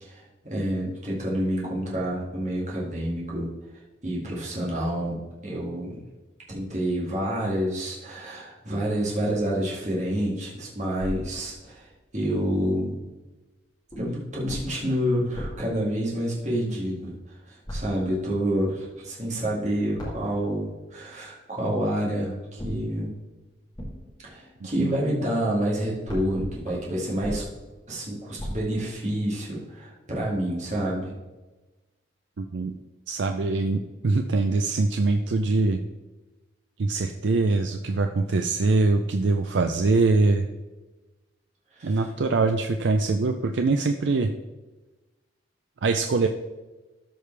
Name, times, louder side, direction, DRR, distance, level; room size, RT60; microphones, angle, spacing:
voice 1, 0.0-3.5 4.0-6.0 6.5-13.0 14.0-23.1 24.2-27.4 27.9-31.1 41.7-42.1, equal, 40° right, -5 dB, 2.0 m, -28 dB
sound 1, 11.0-12.2 13.9-16.8 17.6-18.5 20.0-21.1 22.6-25.4 25.7-29.4, equal, 20° left, 2.4 m, -39 dB
voice 2, 32.4-32.7 33.1-35.8 36.8-40.5 41.8-44.3 45.8-46.3, right 3 dB, 75° right, 6 dB, 0.5 m, -23 dB
13.0 x 5.1 x 3.3 m, 1.2 s
head